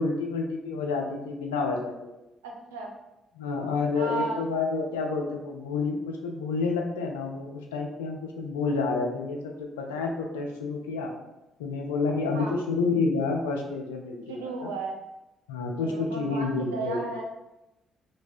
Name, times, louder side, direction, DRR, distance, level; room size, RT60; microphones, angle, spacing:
voice 1, 0.0-2.1 3.4-11.1 11.6-14.7 15.5-17.0, left 4 dB, 85° left, 1 dB, 0.4 m, -29 dB
voice 2, 2.4-2.9 3.9-4.4 12.3-12.6 14.3-15.0 15.8-17.2, right 3 dB, 90° right, 0 dB, 0.5 m, -34 dB
3.2 x 2.1 x 4.1 m, 0.96 s
hypercardioid pair, 45°, 0 cm